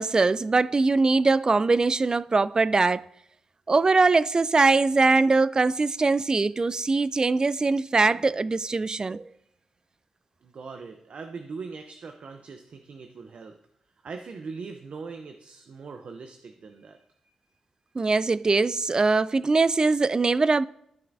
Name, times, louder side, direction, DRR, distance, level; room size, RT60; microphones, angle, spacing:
voice 1, 0.0-3.1 3.7-9.2 18.0-20.7, right 3 dB, 35° right, 0.3 m, -22 dB
voice 2, 10.4-13.6 14.0-17.0 17.2-17.3, right 4 dB, 65° right, 0.6 m, -41 dB
13.0 x 5.7 x 2.6 m
cardioid pair, 50°, 2 cm